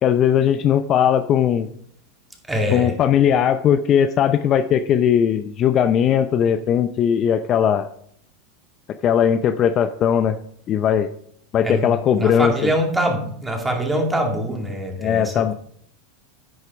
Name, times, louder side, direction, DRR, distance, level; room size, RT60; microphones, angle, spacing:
voice 1, 0.0-1.7 2.7-7.9 9.0-10.4 10.7-11.1 11.5-12.5 15.0-15.5, left 9 dB, 40° left, 10 dB, 0.5 m, -18 dB
voice 2, 2.5-3.0 11.6-15.5, equal, 10° right, 1 dB, 2.4 m, -24 dB
10.0 x 6.4 x 4.7 m, 0.66 s
hypercardioid pair, 110°, 0 cm